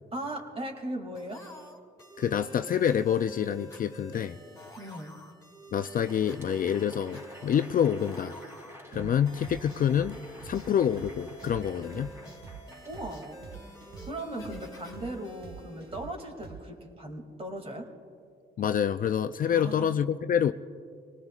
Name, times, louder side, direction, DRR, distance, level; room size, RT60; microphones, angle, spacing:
voice 1, 0.1-1.4 4.8-5.1 8.9-9.2 12.9-13.5 14.0-17.9 19.5-19.9, right 1 dB, 30° right, 3 dB, 2.5 m, -38 dB
sound 1, 1.1-16.6, equal, 15° left, 2.7 m, -49 dB
voice 2, 2.2-4.4 5.7-8.4 8.9-10.2 10.4-12.1 18.6-20.5, left 9 dB, 45° left, 9 dB, 0.4 m, -27 dB
Crowd, 5.9-14.2, left 1 dB, 10° right, 3.0 m, -52 dB
sound 2, 8.9-16.9, right 7 dB, 55° right, 1.0 m, -46 dB
26.5 x 19.0 x 2.4 m, 2.3 s
cardioid pair, 90°, 20 cm